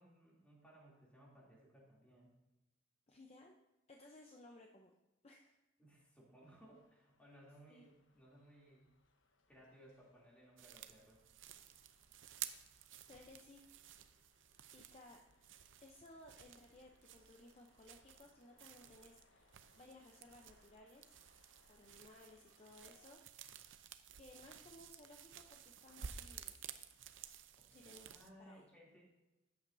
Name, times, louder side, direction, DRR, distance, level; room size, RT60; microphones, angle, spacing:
voice 1, 0.0-2.3 5.8-8.9 9.5-11.5 27.6-29.1, right 1 dB, 5° left, -4 dB, 2.8 m, -63 dB
voice 2, 3.1-3.6 3.9-4.9 5.2-5.6 7.7-7.9 13.1-13.6 14.7-15.2 15.8-21.1 21.7-23.2 23.8-23.9 24.2-26.7 27.7-28.1 28.4-28.6, left 2 dB, 35° left, 1 dB, 0.7 m, -60 dB
sound 1, 6.4-23.1, left 3 dB, 80° left, 1.1 m, -75 dB
sound 2, 10.6-28.3, right 9 dB, 80° right, 0.6 m, -54 dB
13.0 x 9.2 x 2.7 m, 1.0 s
head